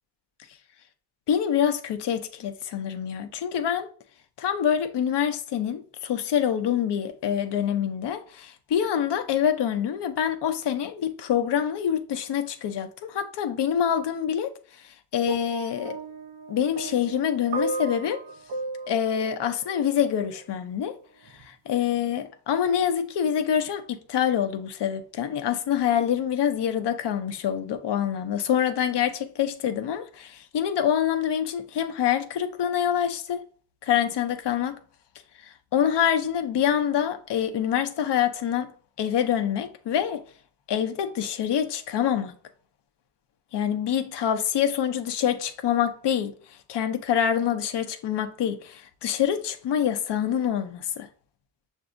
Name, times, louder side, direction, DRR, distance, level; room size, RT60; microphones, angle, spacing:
voice 1, 1.3-3.9 4.4-14.5 15.1-16.0 16.5-18.2 18.9-21.0 21.4-33.4 33.8-34.8 35.7-38.7 39.0-40.2 40.7-42.3 43.5-46.3 46.7-51.1, left 9 dB, 75° left, 0.7 m, -26 dB
sound 1, 15.3-20.4 21.3-21.4, right 3 dB, 85° right, 0.7 m, -35 dB
6.8 x 2.7 x 2.5 m
wide cardioid pair, 110°, 41 cm